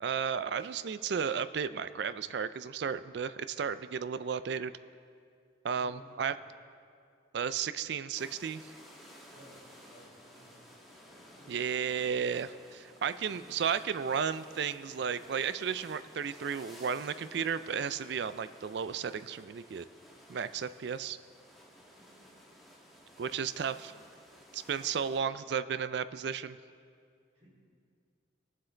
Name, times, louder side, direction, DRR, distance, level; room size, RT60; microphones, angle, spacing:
voice 1, 0.0-4.7 5.6-6.3 7.3-8.7 11.5-19.8 20.3-21.2 23.2-23.9 24.5-26.6, right 7 dB, 60° right, 14 dB, 0.4 m, -33 dB
voice 2, 5.7-6.4 9.3-9.6 9.8-11.0 11.4-11.9 13.0-13.5 21.8-22.3 23.5-24.0 27.3-27.6, equal, 35° right, -5 dB, 2.8 m, -59 dB
sound 1, 8.1-25.2, equal, ahead, 1.3 m, -55 dB
22.0 x 7.6 x 3.3 m, 2.3 s
head